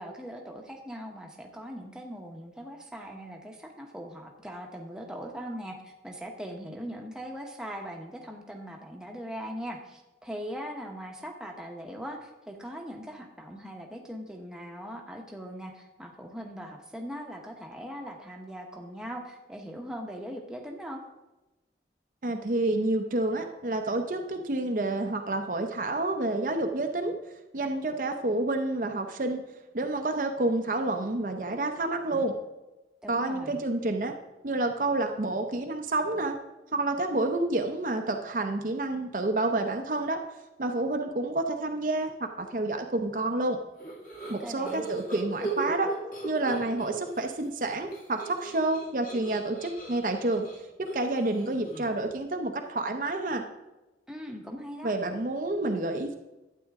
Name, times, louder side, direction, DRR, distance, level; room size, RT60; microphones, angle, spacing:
voice 1, 0.0-21.0 33.0-33.6 44.4-44.8 54.1-54.9, equal, 5° right, 1 dB, 1.0 m, -40 dB
voice 2, 22.2-27.2 27.5-29.4 29.7-32.3 33.1-34.1 34.4-36.4 36.7-40.2 40.6-43.6 44.3-45.9 46.2-50.5 50.8-53.4 54.8-56.1, right 2 dB, 50° right, 4 dB, 0.7 m, -29 dB
sound 1, 43.8-47.3 47.6-52.0, right 2 dB, 50° left, 2.5 m, -38 dB
12.0 x 8.5 x 3.6 m, 1.0 s
head